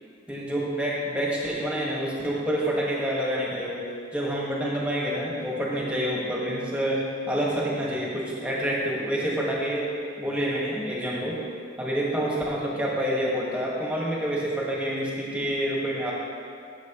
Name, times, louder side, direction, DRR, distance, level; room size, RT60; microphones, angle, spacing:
voice 1, 0.3-3.8 4.1-11.4 11.8-16.1, equal, 5° right, -5 dB, 1.6 m, -27 dB
13.0 x 7.3 x 3.0 m, 2.3 s
head